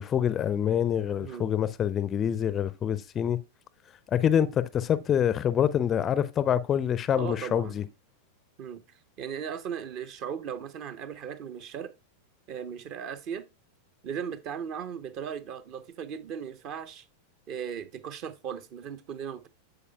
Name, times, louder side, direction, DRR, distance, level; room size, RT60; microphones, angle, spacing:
voice 1, 0.0-3.4 4.1-7.8, left 9 dB, 25° left, 0.5 m, -26 dB
voice 2, 7.2-7.8 8.6-11.9 12.5-13.5 14.0-17.0 17.5-19.5, right 8 dB, 40° right, 0.8 m, -37 dB
8.5 x 6.8 x 2.2 m
figure-of-eight pair, 90°, 0 cm